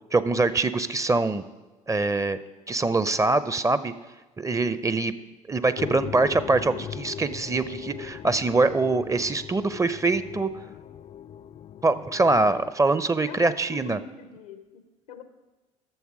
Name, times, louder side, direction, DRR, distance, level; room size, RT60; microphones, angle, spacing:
voice 1, 0.1-1.4 1.9-2.4 2.7-3.9 4.4-5.1 5.5-10.5 11.8-14.0, right 3 dB, 20° right, 14 dB, 0.6 m, -24 dB
sound 1, 5.8-12.7, left 8 dB, 35° left, 0.4 m, -39 dB
voice 2, 13.3-15.2, left 4 dB, 85° left, 9 dB, 0.8 m, -42 dB
12.0 x 7.0 x 4.8 m, 1.2 s
hypercardioid pair, 55°, 17 cm